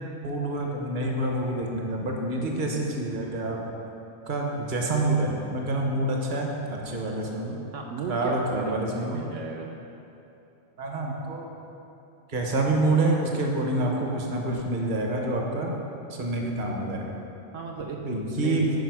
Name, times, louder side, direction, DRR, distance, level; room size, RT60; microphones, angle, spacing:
voice 1, 0.2-3.6 4.3-7.6 8.1-9.2 10.8-11.5 12.3-15.7 16.1-17.2 18.0-18.7, right 2 dB, 40° right, 0 dB, 1.0 m, -27 dB
voice 2, 7.7-9.7 17.5-18.0 18.4-18.7, right 5 dB, 75° right, 0 dB, 0.9 m, -34 dB
9.2 x 5.8 x 4.7 m, 2.9 s
omnidirectional pair, 1.4 m